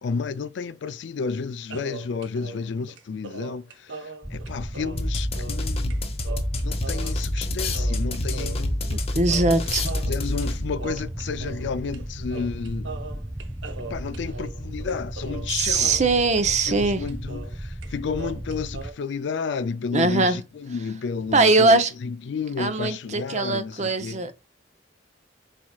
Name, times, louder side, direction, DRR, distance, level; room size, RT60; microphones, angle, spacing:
voice 1, 0.0-6.0 6.6-9.0 10.1-13.0 13.9-16.0 16.7-24.2, left 5 dB, 70° left, 0.4 m, -31 dB
sound 1, 1.7-5.7 5.9-6.0 6.2-7.5 7.7-9.0 9.3-11.7 11.9-12.1 12.3-17.6 17.8-18.9, right 3 dB, 80° right, 0.8 m, -39 dB
sound 2, 4.2-18.9, right 1 dB, 5° right, 0.3 m, -35 dB
sound 3, 5.0-10.8, left 1 dB, 35° left, 0.8 m, -27 dB
voice 2, 8.9-10.0 15.5-17.1 19.9-20.4 21.3-21.9 22.6-24.3, right 3 dB, 40° right, 0.7 m, -21 dB
4.7 x 4.2 x 2.3 m
head